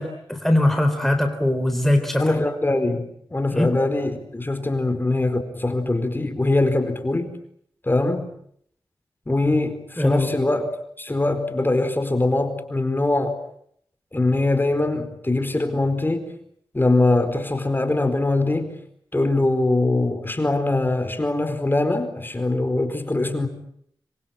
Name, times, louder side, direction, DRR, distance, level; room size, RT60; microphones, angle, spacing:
voice 1, 0.0-2.2 3.5-3.7 10.0-10.3, left 1 dB, 5° left, 5 dB, 3.9 m, -21 dB
voice 2, 2.2-7.3 7.8-8.3 9.3-10.7 11.0-13.3 14.1-16.3 16.7-18.7 19.1-23.5, left 2 dB, 25° left, 8 dB, 4.5 m, -22 dB
27.0 x 23.5 x 9.0 m, 0.70 s
cardioid pair, 60°, 9 cm